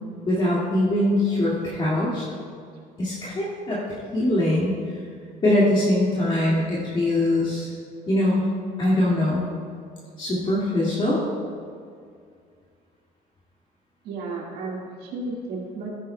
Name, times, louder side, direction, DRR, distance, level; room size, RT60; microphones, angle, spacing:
voice 1, 0.3-2.2 3.0-3.8 4.1-4.7 5.4-7.7 8.1-8.5 8.8-9.4 10.2-11.2, left 1 dB, 30° left, -7 dB, 2.0 m, -22 dB
voice 2, 14.0-15.9, right 3 dB, 85° right, -3 dB, 1.9 m, -33 dB
14.5 x 9.9 x 2.2 m, 2.2 s
cardioid pair, 140°, 16 cm